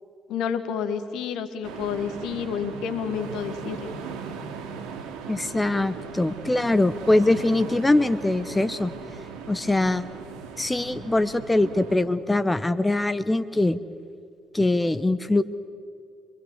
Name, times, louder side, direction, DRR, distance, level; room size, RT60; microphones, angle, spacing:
voice 1, 0.3-3.9, left 7 dB, 70° left, 10 dB, 1.6 m, -30 dB
sound 1, 1.6-12.0, right 5 dB, 70° right, 2.7 m, -38 dB
voice 2, 5.3-8.9 9.5-10.1 10.6-13.8 14.5-15.4, left 2 dB, 15° left, 13 dB, 1.0 m, -22 dB
25.5 x 22.5 x 7.1 m, 2.3 s
hypercardioid pair, 45°, 0 cm